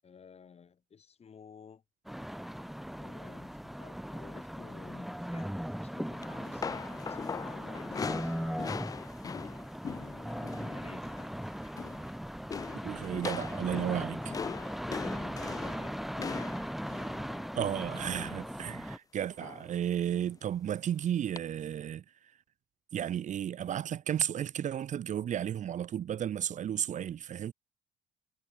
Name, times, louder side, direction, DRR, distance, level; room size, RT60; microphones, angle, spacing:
voice 1, 0.0-1.8 3.0-8.9 10.0-11.1 14.1-14.7 15.0-16.5, left 6 dB, 40° left, 7.6 m, -52 dB
sound 1, 2.1-19.0, equal, ahead, 1.2 m, -39 dB
sound 2, 6.2-10.8 11.0-11.4 11.6-12.1 12.5-18.5 19.4-19.8 20.1-20.3 21.4-21.5, left 6 dB, 20° left, 0.3 m, -41 dB
voice 2, 12.8-14.2 17.5-22.0 22.9-27.5, right 10 dB, 45° right, 0.9 m, -33 dB
cardioid pair, 110°, 17 cm